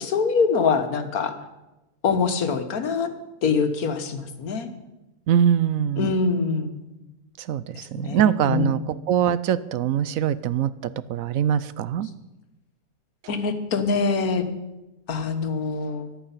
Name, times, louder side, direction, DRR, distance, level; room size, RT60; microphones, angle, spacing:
voice 1, 0.0-1.4 2.0-3.1 3.4-4.7 6.0-6.8 7.9-8.8 13.3-14.4 15.1-16.1, left 5 dB, 90° left, 8 dB, 1.7 m, -24 dB
voice 2, 5.3-6.1 7.4-10.7 11.1-12.1, right 9 dB, 75° right, 16 dB, 1.0 m, -23 dB
14.0 x 11.5 x 5.7 m, 1.0 s
omnidirectional pair, 1.5 m